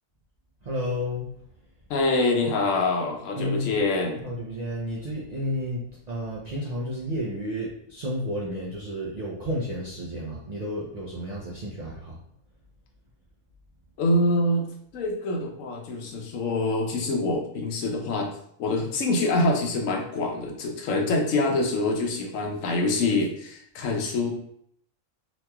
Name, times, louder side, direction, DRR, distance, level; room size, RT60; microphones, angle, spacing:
voice 1, 0.6-1.3 3.3-3.7 4.2-12.2, equal, 60° right, -5 dB, 0.4 m, -31 dB
voice 2, 1.9-4.2 14.0-18.3 18.6-24.3, left 2 dB, 75° left, 1 dB, 1.0 m, -25 dB
3.0 x 2.9 x 2.2 m, 0.68 s
omnidirectional pair, 1.4 m